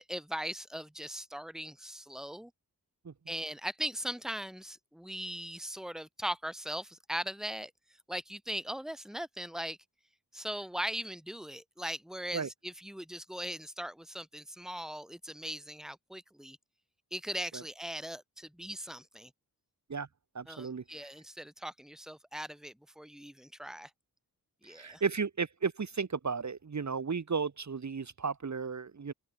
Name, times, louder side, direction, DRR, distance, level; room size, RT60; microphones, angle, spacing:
voice 1, 0.0-2.5 3.3-7.7 8.1-9.8 10.3-16.6 17.1-19.3 20.5-23.9 24.6-25.0, equal, ahead, 2.4 m, -39 dB
voice 2, 20.4-20.8 24.8-29.1, right 5 dB, 50° right, 1.8 m, -34 dB
open air
wide cardioid pair, 115°, 37 cm